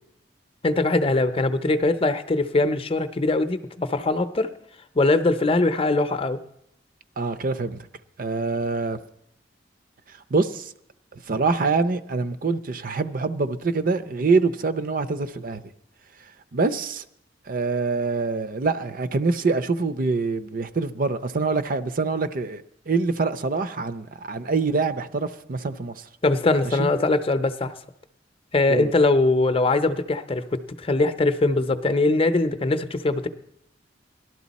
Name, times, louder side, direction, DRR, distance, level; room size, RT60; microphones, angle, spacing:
voice 1, 0.6-4.5 4.9-6.4 26.2-27.7 28.5-33.3, left 2 dB, 30° left, 10 dB, 0.7 m, -22 dB
voice 2, 7.2-7.9 8.2-9.0 10.3-10.7 11.1-15.6 16.5-17.0 17.5-26.1 26.6-26.9 28.7-28.9, right 4 dB, 50° right, 13 dB, 0.6 m, -25 dB
18.5 x 12.0 x 4.1 m, 0.78 s
head